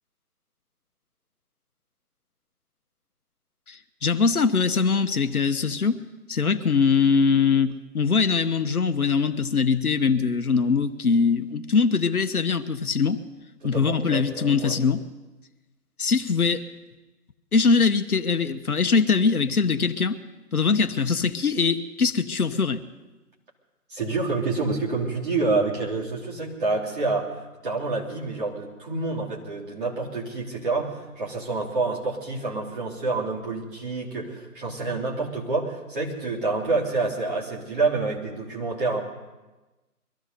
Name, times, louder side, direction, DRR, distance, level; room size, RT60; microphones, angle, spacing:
voice 1, 3.7-6.0 6.3-13.2 13.6-15.0 16.0-16.7 17.5-20.2 20.5-22.8, left 5 dB, 65° left, 8 dB, 1.0 m, -22 dB
voice 2, 13.6-14.8 23.9-27.3 27.6-39.0, right 3 dB, 35° right, -5 dB, 3.4 m, -28 dB
23.0 x 14.5 x 4.1 m, 1.1 s
figure-of-eight pair, 160°, 47 cm